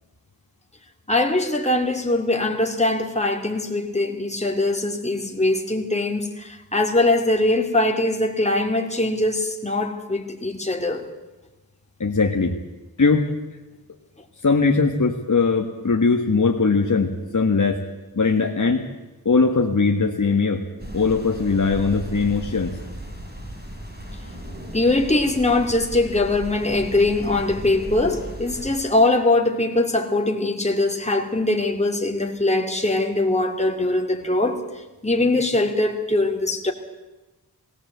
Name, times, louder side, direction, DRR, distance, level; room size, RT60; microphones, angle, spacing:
voice 1, 1.1-11.1 24.7-36.7, left 2 dB, 20° left, 2 dB, 2.5 m, -22 dB
voice 2, 12.0-12.6 13.0-13.3 14.4-17.8 18.1-18.8 19.2-20.6 20.9-22.8, left 4 dB, 50° left, 2 dB, 1.6 m, -20 dB
sound 1, 20.8-28.8, equal, 25° right, 5.0 m, -36 dB
18.5 x 17.5 x 8.0 m, 1.1 s
cardioid pair, 45°, 37 cm